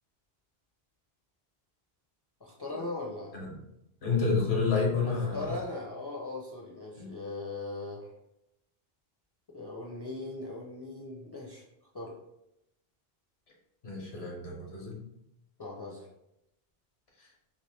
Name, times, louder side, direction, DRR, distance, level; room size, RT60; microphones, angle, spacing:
voice 1, 2.4-3.3 5.1-8.1 9.5-11.7 11.9-12.2 15.6-16.1, left 2 dB, 35° left, -3 dB, 0.4 m, -39 dB
voice 2, 3.3-3.7 4.0-5.6 7.0-7.1 13.8-15.0 17.2-17.3, left 4 dB, 90° left, -1 dB, 1.2 m, -30 dB
3.1 x 2.8 x 3.3 m, 0.84 s
omnidirectional pair, 1.1 m